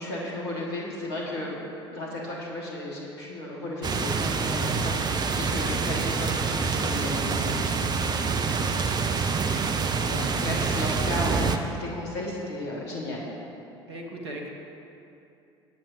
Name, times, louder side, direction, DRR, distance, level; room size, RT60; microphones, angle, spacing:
voice 1, 0.0-1.6 1.9-7.8 10.0-13.3, left 1 dB, 65° left, -4 dB, 2.7 m, -34 dB
sound 1, 3.8-11.6, right 5 dB, 30° right, 0.8 m, -26 dB
voice 2, 13.8-14.5, right 1 dB, 70° right, 0 dB, 1.8 m, -38 dB
23.0 x 9.0 x 3.0 m, 2.7 s
figure-of-eight pair, 60°, 14 cm